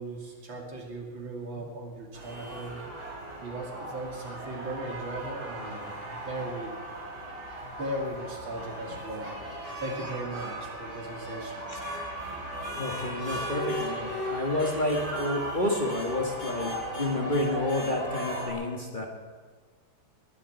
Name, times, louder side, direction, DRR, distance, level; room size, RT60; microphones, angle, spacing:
voice 1, 0.0-2.8 3.4-6.8 7.6-9.4 9.8-11.7, right 1 dB, 75° right, 1 dB, 3.4 m, -37 dB
sound 1, 2.1-18.5, equal, 55° right, 5.6 m, -37 dB
voice 2, 12.7-19.1, left 1 dB, 25° left, 1 dB, 1.8 m, -30 dB
20.0 x 7.5 x 9.0 m, 1.5 s
omnidirectional pair, 2.2 m